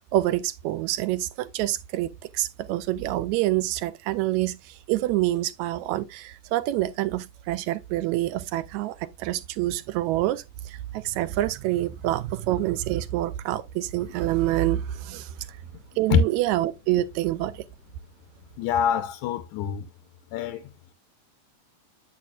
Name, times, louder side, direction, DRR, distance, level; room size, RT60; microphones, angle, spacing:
voice 1, 0.1-15.6 16.0-17.6, right 15 dB, 80° right, 1.8 m, -27 dB
voice 2, 18.6-19.9 20.3-20.7, left 8 dB, 85° left, 2.1 m, -24 dB
8.6 x 7.7 x 2.4 m
omnidirectional pair, 3.5 m